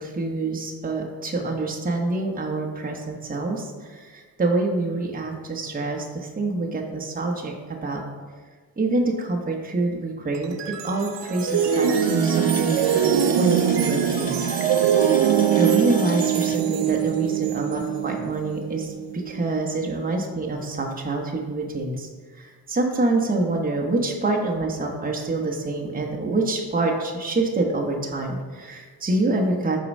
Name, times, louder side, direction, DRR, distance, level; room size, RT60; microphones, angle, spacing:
voice 1, 0.0-8.0 8.8-10.6 10.8-14.5 15.6-22.1 22.3-29.8, right 2 dB, 20° right, 0 dB, 1.0 m, -26 dB
sound 1, 10.3-19.6, right 9 dB, 75° right, 0.7 m, -22 dB
Water tap faucet, 11.5-18.0 18.3-18.4 18.8-19.0, left 5 dB, 20° left, 0.3 m, -37 dB
6.8 x 3.9 x 5.3 m, 1.5 s
cardioid pair, 90°, 42 cm